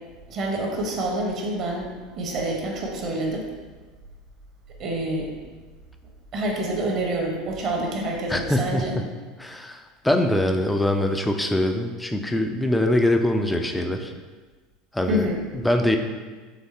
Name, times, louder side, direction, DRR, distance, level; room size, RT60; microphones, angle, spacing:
voice 1, 0.3-3.4 4.8-5.4 6.3-9.0 15.1-15.4, right 1 dB, 45° right, 0 dB, 0.9 m, -27 dB
voice 2, 8.3-9.0 9.4-9.8 10.0-14.1 14.9-15.3 15.6-16.0, left 1 dB, 5° left, 4 dB, 0.4 m, -23 dB
4.1 x 3.4 x 3.1 m, 1.4 s
figure-of-eight pair, 70°, 0 cm